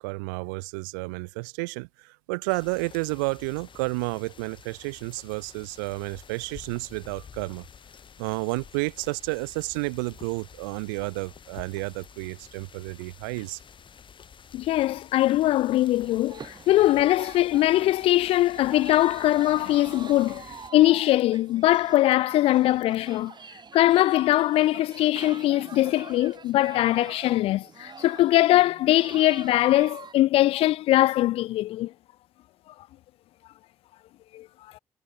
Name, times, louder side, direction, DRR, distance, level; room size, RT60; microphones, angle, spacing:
voice 1, 0.0-7.6 8.2-13.6, right 29 dB, 90° right, 0.7 m, -31 dB
sound 1, 2.5-20.7, left 7 dB, 55° left, 6.6 m, -50 dB
voice 2, 14.5-20.4 20.7-23.3 23.7-31.9 34.3-34.5, left 15 dB, 70° left, 0.4 m, -21 dB
sound 2, 15.7-30.1, right 6 dB, 45° right, 3.4 m, -45 dB
hypercardioid pair, 45°, 10 cm